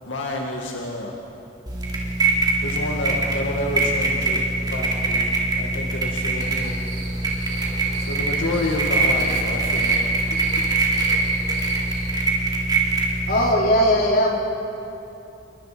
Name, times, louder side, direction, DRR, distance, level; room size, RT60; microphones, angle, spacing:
voice 1, 0.0-1.2 2.6-6.7 8.0-10.0, left 1 dB, 80° left, -1 dB, 2.1 m, -29 dB
sound 1, 1.7-13.5, right 3 dB, 20° right, 3.4 m, -23 dB
sound 2, 6.4-12.1, right 2 dB, 85° right, 3.9 m, -39 dB
voice 2, 13.3-14.4, equal, 50° left, -2 dB, 3.9 m, -18 dB
29.0 x 23.0 x 5.1 m, 2.9 s
head